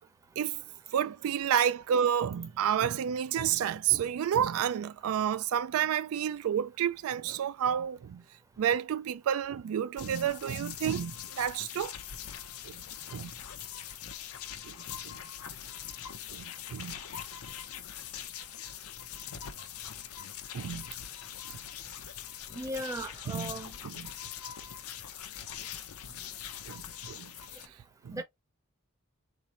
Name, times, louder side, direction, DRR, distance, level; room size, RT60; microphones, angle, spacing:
voice 1, 0.9-8.2 8.6-11.9 12.6-12.8 13.1-13.3 14.6-14.7 15.0-15.1 16.3-16.4 16.7-16.9 20.5-20.8 23.3-23.5 23.8-24.1 26.7-27.3 28.0-28.2, right 9 dB, 80° right, 0.3 m, -30 dB
sound 1, 10.0-27.7, left 9 dB, 85° left, 0.6 m, -43 dB
voice 2, 22.5-23.7 28.1-28.2, right 1 dB, 15° right, 0.6 m, -37 dB
4.1 x 2.8 x 2.9 m
head